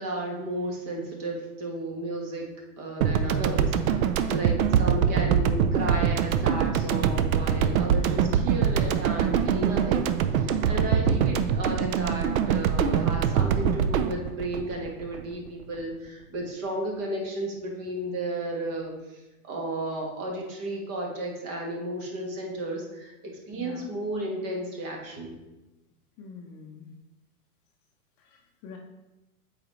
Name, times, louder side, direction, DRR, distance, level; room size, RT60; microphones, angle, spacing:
voice 1, 0.0-2.5 2.8-10.1 10.3-18.9 19.4-23.1 23.5-25.3, right 1 dB, 35° right, 0 dB, 1.4 m, -33 dB
sound 1, 3.0-15.5, right 7 dB, 70° right, 0.6 m, -24 dB
voice 2, 4.2-4.6 23.5-23.9 26.2-27.0 28.2-28.8, left 5 dB, 30° left, 1 dB, 0.6 m, -45 dB
7.7 x 4.2 x 3.0 m, 1.0 s
hypercardioid pair, 135°, 44 cm